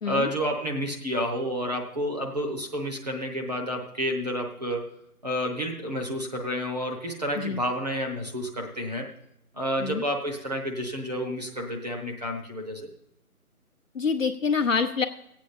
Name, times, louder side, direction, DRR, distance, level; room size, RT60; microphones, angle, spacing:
voice 1, 0.0-4.9 5.2-9.1 9.5-12.9, equal, 25° right, 1 dB, 0.9 m, -30 dB
voice 2, 13.9-15.0, left 5 dB, 60° left, 6 dB, 0.8 m, -26 dB
16.0 x 8.3 x 4.2 m, 0.80 s
figure-of-eight pair, 165°, 45 cm